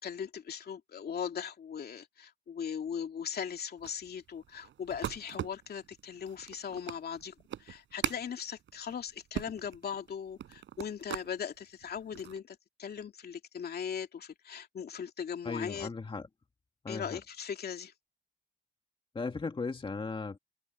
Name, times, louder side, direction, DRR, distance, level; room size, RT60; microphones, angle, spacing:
voice 1, 0.0-7.3 7.6-15.9 16.9-17.9, left 7 dB, 55° left, 2.8 m, -39 dB
sound 1, 3.8-11.3 11.8-12.4, right 11 dB, 70° right, 5.4 m, -41 dB
voice 2, 15.4-16.3 16.8-17.2 19.1-20.4, left 4 dB, 25° left, 2.0 m, -37 dB
open air
cardioid pair, 90°, 20 cm